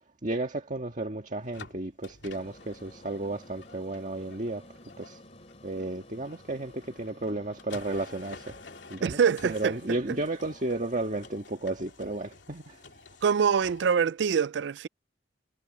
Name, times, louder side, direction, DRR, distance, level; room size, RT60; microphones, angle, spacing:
voice 1, 0.2-4.6 5.0-5.2 5.6-8.5 8.9-12.8, right 2 dB, 45° right, 1.7 m, -33 dB
sound 1, 1.4-13.9, left 4 dB, 85° left, 2.7 m, -51 dB
sound 2, 2.3-11.4, left 1 dB, 35° left, 7.3 m, -53 dB
voice 2, 9.0-10.0 13.2-14.9, right 6 dB, 80° right, 0.4 m, -25 dB
head